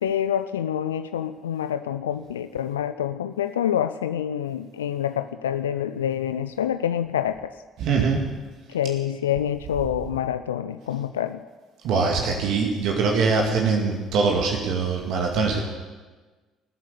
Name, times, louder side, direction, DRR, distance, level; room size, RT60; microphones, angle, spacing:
voice 1, 0.0-7.5 8.7-11.4, left 10 dB, 80° left, 11 dB, 0.4 m, -27 dB
voice 2, 7.8-8.2 11.8-15.6, right 4 dB, 60° right, 1 dB, 2.2 m, -22 dB
18.5 x 8.2 x 8.1 m, 1.3 s
figure-of-eight pair, 50°, 0 cm